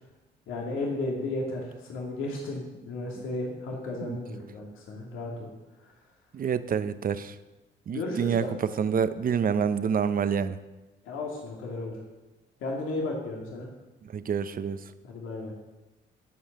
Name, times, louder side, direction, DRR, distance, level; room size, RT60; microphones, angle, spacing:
voice 1, 0.5-5.5 7.9-8.8 11.0-11.9 12.6-13.7 15.0-15.5, left 2 dB, 90° left, -1 dB, 2.4 m, -34 dB
voice 2, 6.3-7.3 7.9-10.6 14.0-14.8, right 7 dB, 45° right, 13 dB, 0.8 m, -27 dB
16.5 x 5.5 x 6.6 m, 1.1 s
cardioid pair, 90°, 20 cm